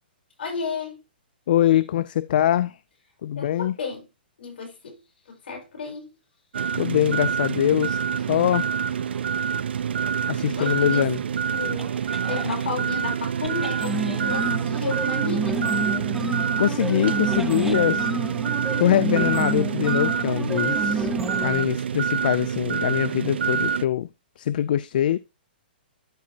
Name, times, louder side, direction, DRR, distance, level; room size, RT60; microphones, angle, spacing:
voice 1, 0.4-1.0 3.3-4.0 4.4-4.9 5.4-6.1 10.5-11.0 11.5-11.9 12.3-15.6, left 4 dB, 75° left, 4.8 m, -32 dB
voice 2, 1.5-2.8 3.2-3.7 6.7-8.0 8.3-8.6 10.3-11.2 16.6-18.1 18.8-21.1 21.4-24.1 24.4-25.2, left 11 dB, 55° left, 0.4 m, -23 dB
sound 1, 6.5-23.8, right 7 dB, 85° right, 0.5 m, -26 dB
sound 2, 8.1-12.7 13.4-21.7, right 2 dB, 5° right, 0.6 m, -30 dB
12.5 x 4.8 x 2.8 m
hypercardioid pair, 155°, 6 cm